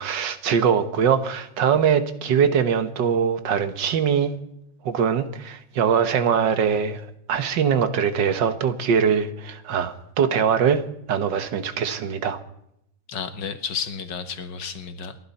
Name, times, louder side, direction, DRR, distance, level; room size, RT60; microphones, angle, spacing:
voice 1, 0.0-4.3 4.9-10.8 11.1-12.4, right 7 dB, 80° right, 1.9 m, -22 dB
voice 2, 13.1-15.2, left 6 dB, 80° left, 2.0 m, -32 dB
29.5 x 11.5 x 4.2 m
omnidirectional pair, 1.9 m